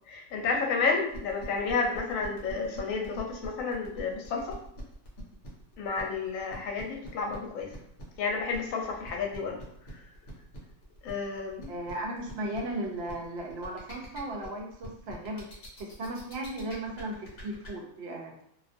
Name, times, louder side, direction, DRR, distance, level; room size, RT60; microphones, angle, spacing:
voice 1, 0.1-4.6 5.8-7.8 8.2-9.6 9.9-10.0 11.0-11.7, left 4 dB, 80° left, 2 dB, 1.0 m, -31 dB
sound 1, 1.1-17.7, equal, 55° left, 0.9 m, -45 dB
voice 2, 11.7-15.5 15.8-18.4, right 1 dB, 60° right, 0 dB, 0.8 m, -36 dB
2.4 x 2.3 x 2.5 m, 0.70 s
omnidirectional pair, 1.4 m